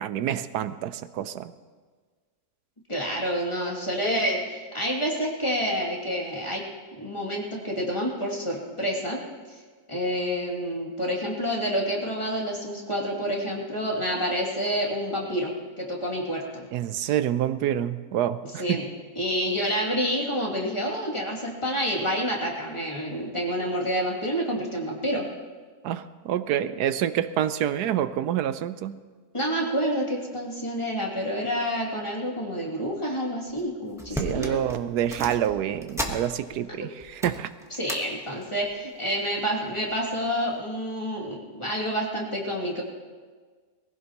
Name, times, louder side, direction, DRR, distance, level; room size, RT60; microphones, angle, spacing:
voice 1, 0.0-1.5 16.7-18.8 25.8-29.0 34.2-37.5, right 10 dB, 90° right, 13 dB, 1.2 m, -27 dB
voice 2, 2.9-6.6 6.9-9.2 9.9-16.7 18.6-18.9 19.2-25.2 29.3-34.6 36.8-36.9 37.7-42.8, equal, 20° left, -3 dB, 2.7 m, -28 dB
sound 1, 33.5-33.6 33.9-36.7 37.0-38.0 38.4-38.7 39.5-40.0 40.5-40.6, equal, ahead, 1.0 m, -36 dB
22.0 x 16.0 x 3.0 m, 1.5 s
omnidirectional pair, 1.7 m